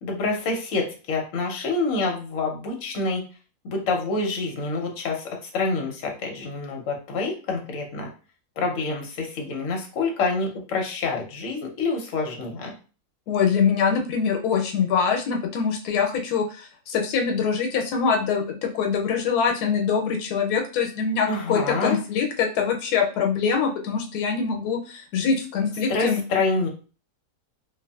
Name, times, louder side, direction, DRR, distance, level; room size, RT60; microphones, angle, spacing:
voice 1, 0.0-3.2 3.6-8.1 8.6-12.7 21.3-22.0 25.9-26.7, left 3 dB, 60° left, 1 dB, 1.0 m, -27 dB
voice 2, 13.3-26.2, left 6 dB, 90° left, 2 dB, 1.1 m, -24 dB
2.7 x 2.5 x 2.3 m, 0.36 s
omnidirectional pair, 1.6 m